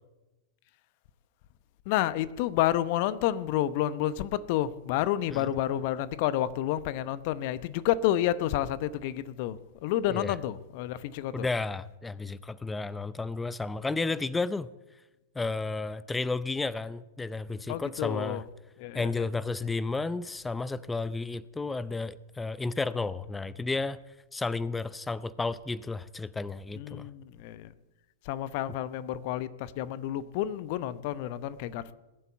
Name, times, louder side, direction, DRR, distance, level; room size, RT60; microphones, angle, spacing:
voice 1, 1.9-11.5 17.7-18.4 18.8-19.2 26.7-27.7 28.2-31.9, left 12 dB, 50° left, 16 dB, 0.8 m, -30 dB
voice 2, 11.3-14.7 15.4-18.4 18.9-24.0 24.3-27.1, left 3 dB, 10° left, 18 dB, 0.5 m, -32 dB
20.0 x 8.3 x 8.2 m, 1.1 s
figure-of-eight pair, 100°, 0 cm